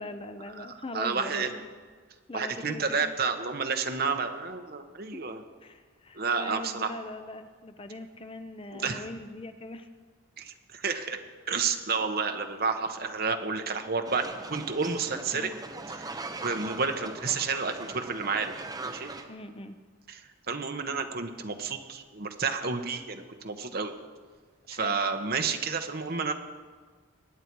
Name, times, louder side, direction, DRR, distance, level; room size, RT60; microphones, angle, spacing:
voice 1, 0.0-1.7 2.3-3.1 5.1-5.2 5.6-9.9 10.8-11.2 15.3-15.6 19.3-19.8 24.7-25.0, left 2 dB, 25° left, 8 dB, 0.6 m, -41 dB
voice 2, 0.9-1.5 2.3-5.4 6.1-6.9 8.7-9.0 10.4-11.2 11.5-15.5 15.9-16.1 16.4-18.5 18.8-19.1 20.1-20.2 20.5-23.9 24.7-26.3, right 5 dB, 50° right, 6 dB, 1.1 m, -30 dB
sound 1, 14.1-19.2, right 3 dB, 20° right, 0.9 m, -40 dB
21.5 x 10.0 x 4.7 m, 1.5 s
head